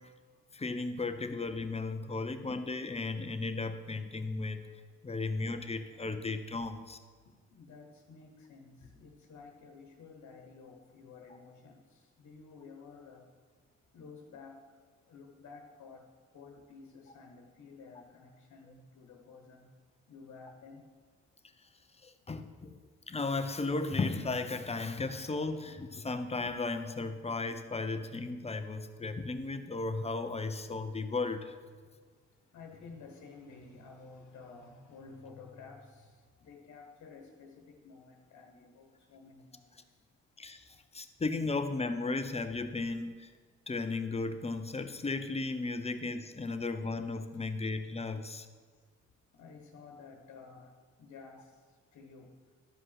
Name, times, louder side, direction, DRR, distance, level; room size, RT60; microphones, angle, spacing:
voice 1, 0.5-4.6 5.0-7.0 22.0-22.8 23.1-31.5 40.4-40.6 40.9-43.3 43.7-48.5, left 3 dB, 20° left, 9 dB, 0.7 m, -35 dB
voice 2, 7.2-13.3 13.9-14.8 15.0-19.7 20.1-20.9 31.9-40.0 49.3-52.5, left 4 dB, 65° left, 3 dB, 1.2 m, -53 dB
12.5 x 5.1 x 5.9 m, 1.5 s
cardioid pair, 90°, 30 cm